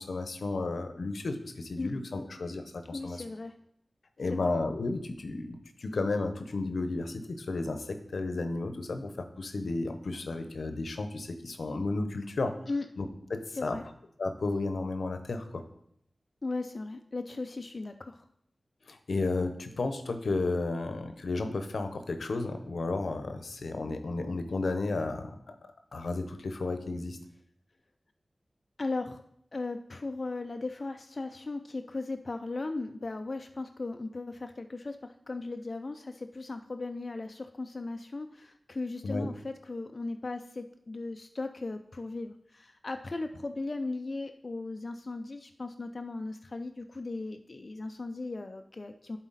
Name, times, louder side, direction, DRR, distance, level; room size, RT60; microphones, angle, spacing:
voice 1, 0.0-3.2 4.2-12.5 13.0-13.8 14.2-15.6 18.9-25.5 25.9-27.2 39.0-39.3, left 3 dB, 90° left, 8 dB, 0.7 m, -33 dB
voice 2, 2.9-3.5 4.3-4.5 12.7-12.9 13.6-13.8 16.4-18.3 28.8-29.2 29.5-49.2, left 3 dB, 50° left, 6 dB, 0.4 m, -37 dB
11.0 x 4.1 x 4.0 m, 0.72 s
wide cardioid pair, 75°, 0 cm